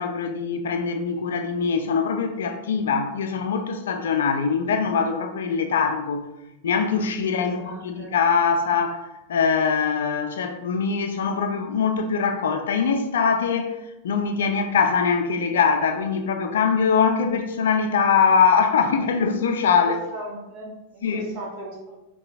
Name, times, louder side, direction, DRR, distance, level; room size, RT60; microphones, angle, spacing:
voice 1, 0.0-6.3 6.6-20.0 21.0-21.3, left 6 dB, 60° left, 0.5 m, -22 dB
voice 2, 7.4-8.1 20.1-22.0, right 1 dB, 45° right, 1.3 m, -37 dB
5.6 x 2.3 x 3.3 m
figure-of-eight pair, 90°, 0 cm